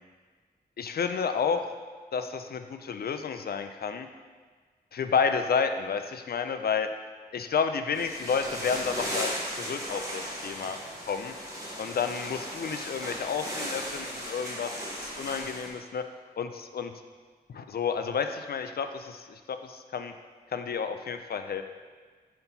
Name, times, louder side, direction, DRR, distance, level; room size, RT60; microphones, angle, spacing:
voice 1, 0.8-1.7 2.1-4.1 4.9-6.9 7.3-10.8 11.0-11.3 11.8-16.1 16.4-16.9 17.5-20.1 20.5-21.6, left 6 dB, 65° left, 8 dB, 0.4 m, -31 dB
sound 1, 7.9-15.7, equal, 20° right, 1.3 m, -36 dB
5.5 x 4.4 x 3.9 m, 1.5 s
wide cardioid pair, 120°, 17 cm